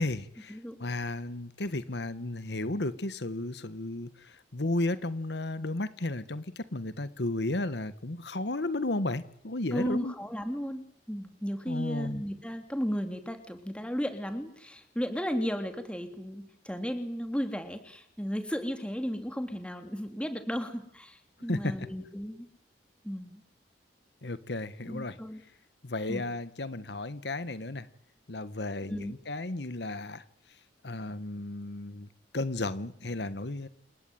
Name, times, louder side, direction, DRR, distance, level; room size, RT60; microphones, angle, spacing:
voice 1, 0.0-10.1 11.7-12.2 21.5-21.7 24.2-25.2 25.8-27.9 28.3-30.6 30.8-32.1 32.3-33.7, left 2 dB, 70° left, 14 dB, 1.4 m, -34 dB
voice 2, 9.7-22.5 23.0-23.4 24.9-25.4 26.1-26.2 28.8-29.1, equal, 5° left, 7 dB, 3.3 m, -34 dB
28.5 x 17.5 x 9.4 m, 0.67 s
head